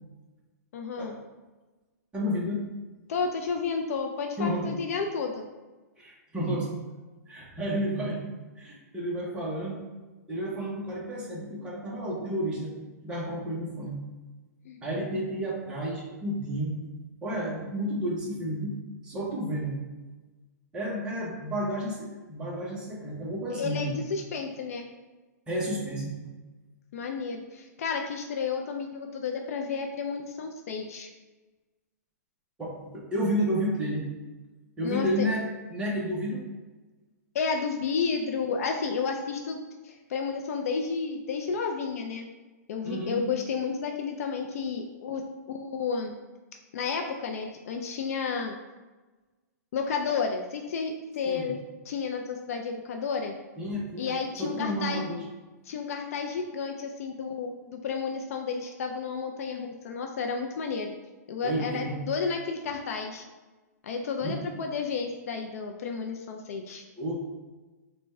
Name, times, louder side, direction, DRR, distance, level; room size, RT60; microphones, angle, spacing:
voice 1, 0.7-1.2 3.1-5.4 14.6-14.8 23.5-24.8 26.9-31.1 34.8-35.3 37.3-39.6 39.8-42.3 42.7-45.2 45.5-46.1 46.7-48.5 49.7-51.6 51.9-53.3 54.0-55.0 55.7-60.9 61.3-63.2 63.8-66.8, left 5 dB, 55° left, 3 dB, 0.4 m, -31 dB
voice 2, 2.1-2.7 4.4-4.7 6.0-6.7 7.3-8.2 8.6-9.8 10.3-12.8 13.0-14.0 14.8-16.8 17.2-19.8 20.7-24.0 25.5-26.2 32.6-34.1 34.8-36.5 42.8-43.2 51.3-51.5 53.6-55.2 61.4-62.0 64.2-64.4 67.0-67.1, equal, 10° right, -4 dB, 0.7 m, -31 dB
3.4 x 2.2 x 4.2 m, 1.2 s
hypercardioid pair, 155°, 9 cm